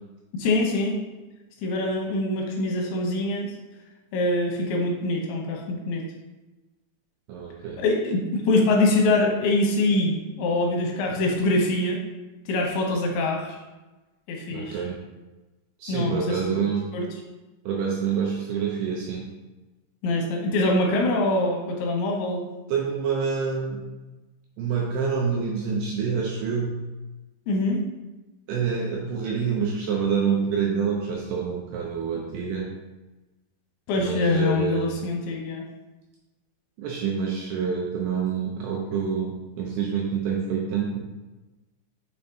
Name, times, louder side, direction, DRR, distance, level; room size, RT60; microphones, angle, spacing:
voice 1, 0.3-1.0 1.6-3.5 4.1-6.0 7.8-12.0 12.5-13.6 14.3-14.8 15.9-16.4 16.9-17.1 20.0-22.5 27.5-27.8 33.9-35.6, left 2 dB, 80° left, 0 dB, 3.2 m, -24 dB
voice 2, 7.3-7.8 14.5-15.0 15.8-16.9 17.7-19.2 22.7-23.8 24.6-26.8 28.5-32.7 34.0-35.1 36.8-41.0, right 6 dB, 80° right, -2 dB, 2.5 m, -27 dB
6.7 x 5.6 x 2.8 m, 1.1 s
omnidirectional pair, 5.4 m